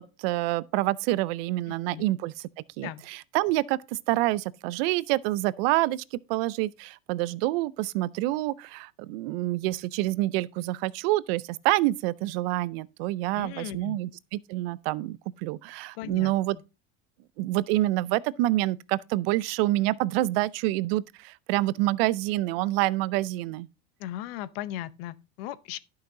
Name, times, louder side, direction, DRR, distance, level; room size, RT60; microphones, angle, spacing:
voice 1, 0.0-2.3 2.8-16.6 17.4-23.7, right 17 dB, 80° right, 0.5 m, -27 dB
voice 2, 1.7-2.0 2.8-3.0 13.4-14.0 16.0-16.3 24.0-25.8, left 13 dB, 85° left, 0.8 m, -37 dB
11.0 x 5.7 x 3.7 m
cardioid pair, 145°, 29 cm